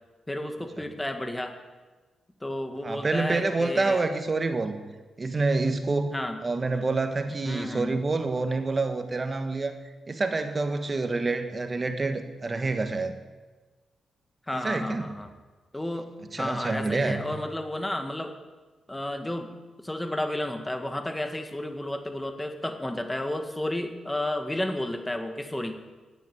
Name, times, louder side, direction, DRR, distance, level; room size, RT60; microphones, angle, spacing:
voice 1, 0.3-1.5 2.4-4.1 6.1-6.4 7.3-8.0 14.5-15.3 15.7-16.1 16.4-18.4 18.9-19.5 19.8-25.7, left 1 dB, 15° left, 6 dB, 1.7 m, -32 dB
voice 2, 2.8-4.8 5.2-6.1 6.4-9.8 10.1-13.1 14.5-15.0 16.3-17.2, right 3 dB, 35° right, 8 dB, 1.5 m, -27 dB
11.0 x 9.1 x 9.1 m, 1.3 s
cardioid pair, 65°, 0 cm